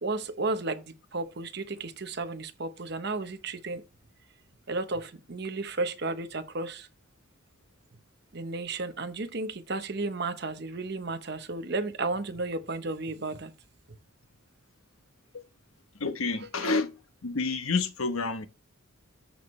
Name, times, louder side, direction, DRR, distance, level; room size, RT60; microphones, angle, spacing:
voice 1, 0.0-3.8 4.7-6.9 8.3-13.5, right 3 dB, 50° right, 0.9 m, -33 dB
voice 2, 15.9-16.9 17.2-18.5, left 4 dB, 80° left, 1.0 m, -29 dB
13.5 x 4.7 x 3.2 m
head